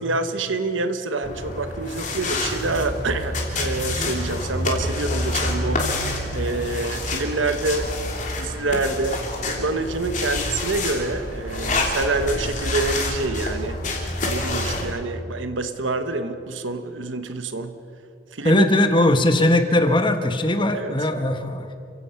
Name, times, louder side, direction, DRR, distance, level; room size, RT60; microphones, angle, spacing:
voice 1, 0.0-5.9 6.3-7.9 8.4-9.2 9.5-13.8 14.3-17.7 18.3-18.6 20.7-21.0, right 3 dB, 85° right, 9 dB, 1.1 m, -27 dB
sound 1, 1.2-14.9, left 2 dB, 40° left, 3.3 m, -27 dB
voice 2, 18.4-21.7, left 1 dB, 25° left, 7 dB, 1.2 m, -19 dB
29.0 x 16.5 x 5.8 m, 2.6 s
head